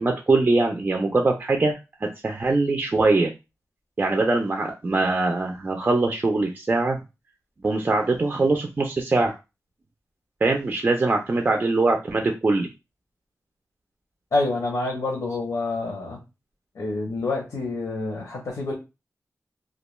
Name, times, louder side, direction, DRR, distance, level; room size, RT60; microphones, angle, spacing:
voice 1, 0.0-3.3 4.0-7.0 7.6-9.4 10.4-12.7, right 3 dB, 30° right, 3 dB, 0.3 m, -22 dB
voice 2, 14.3-16.2 16.7-18.7, left 2 dB, 70° left, -1 dB, 0.8 m, -27 dB
2.3 x 2.2 x 3.0 m, 0.26 s
wide cardioid pair, 135°, 6 cm